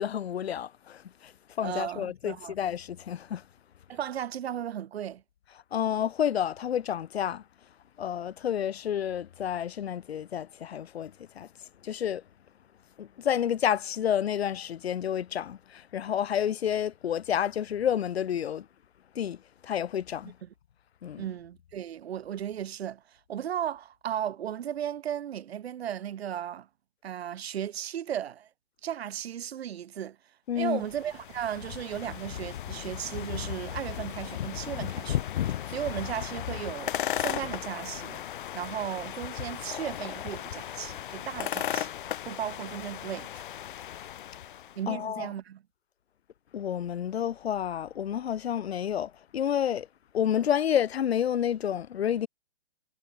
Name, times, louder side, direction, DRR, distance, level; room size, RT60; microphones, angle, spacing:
voice 1, 0.0-3.4 5.5-7.4 8.0-11.5 11.8-12.2 13.0-18.7 19.1-20.4 21.0-21.4 30.5-30.8 44.9-45.3 46.5-49.9 50.1-52.3, left 9 dB, 85° left, 0.9 m, -30 dB
voice 2, 1.6-2.5 3.9-5.2 21.2-26.7 27.0-28.5 28.8-30.2 30.6-35.2 35.7-38.2 38.5-41.9 42.3-43.4 44.8-45.6, right 10 dB, 85° right, 0.7 m, -35 dB
sound 1, 30.7-44.8, left 11 dB, 55° left, 0.5 m, -35 dB
hypercardioid pair, 160°, 31 cm